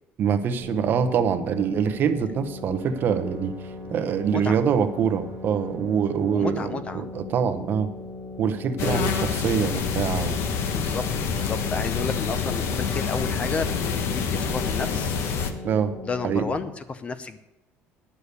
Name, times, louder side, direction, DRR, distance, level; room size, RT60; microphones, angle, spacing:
voice 1, 0.2-3.5 3.9-7.9 8.4-10.5 15.6-15.9 16.2-16.5, right 7 dB, 45° right, 10 dB, 0.8 m, -24 dB
sound 1, 0.6-16.6, left 3 dB, 80° left, 3.8 m, -39 dB
sound 2, 2.8-6.8, right 4 dB, 60° right, 1.7 m, -48 dB
voice 2, 6.3-7.0 8.8-9.1 10.6-11.0 11.3-15.2 16.1-17.4, left 4 dB, 25° left, 12 dB, 0.6 m, -32 dB
sound 3, 8.8-15.5, left 6 dB, 60° left, 1.1 m, -27 dB
9.9 x 6.7 x 8.1 m, 0.95 s
cardioid pair, 160°, 5 cm